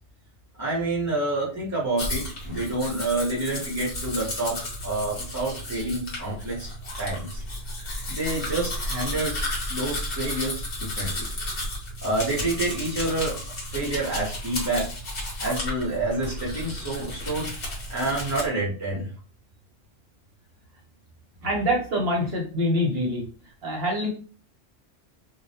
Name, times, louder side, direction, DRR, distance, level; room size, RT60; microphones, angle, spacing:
voice 1, 0.6-4.6 4.8-6.7 7.0-7.4 8.1-9.4 9.7-11.3 12.0-13.4 13.7-14.9 15.4-17.5 17.9-19.1, right 2 dB, 20° right, -6 dB, 0.5 m, -28 dB
Domestic sounds home sounds, 2.0-18.5, left 1 dB, 50° left, 1.1 m, -33 dB
voice 2, 21.4-23.2 23.6-24.1, equal, 60° right, -1 dB, 0.7 m, -25 dB
2.2 x 2.1 x 2.8 m, 0.37 s
omnidirectional pair, 1.3 m